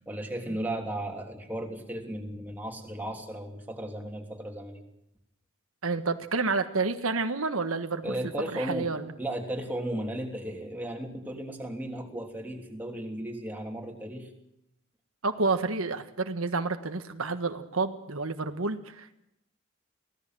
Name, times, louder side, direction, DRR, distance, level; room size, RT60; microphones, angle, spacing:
voice 1, 0.0-4.8 8.0-8.9 9.2-14.3, right 1 dB, 10° right, 1 dB, 3.2 m, -35 dB
voice 2, 5.8-8.1 8.5-9.1 15.2-19.1, right 3 dB, 85° right, 8 dB, 1.5 m, -29 dB
24.0 x 17.5 x 7.7 m, 0.82 s
head